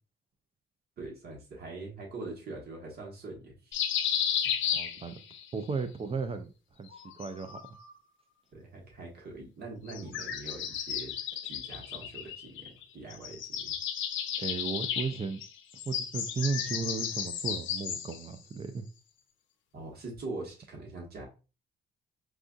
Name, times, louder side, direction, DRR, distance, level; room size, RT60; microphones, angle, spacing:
voice 1, 1.0-3.7 8.5-11.1 11.4-13.7 19.7-21.3, right 2 dB, 50° right, 1.6 m, -43 dB
sound 1, 3.7-5.5 6.9-7.9 9.9-12.8 13.1-18.3, left 9 dB, 75° left, 0.6 m, -34 dB
voice 2, 4.7-5.1 5.5-6.5 6.8-7.6 14.4-15.4 15.9-18.9, right 4 dB, 30° right, 0.4 m, -35 dB
4.7 x 2.6 x 2.3 m
cardioid pair, 90°, 20 cm